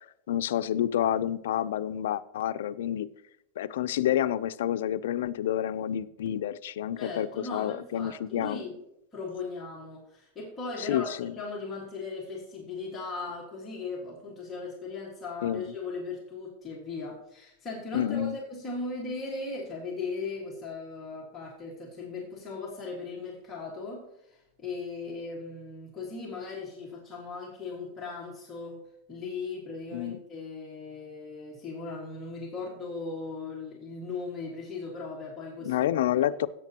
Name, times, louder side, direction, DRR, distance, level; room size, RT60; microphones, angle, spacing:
voice 1, 0.0-3.1 3.6-8.6 10.8-11.3 15.4-15.6 17.9-18.4 29.9-30.2 35.6-36.5, left 11 dB, 75° left, 0.5 m, -29 dB
voice 2, 7.0-8.8 9.1-28.8 29.1-35.9 36.2-36.3, left 3 dB, 15° left, 1.8 m, -38 dB
17.0 x 8.2 x 2.9 m
supercardioid pair, 175°, 0 cm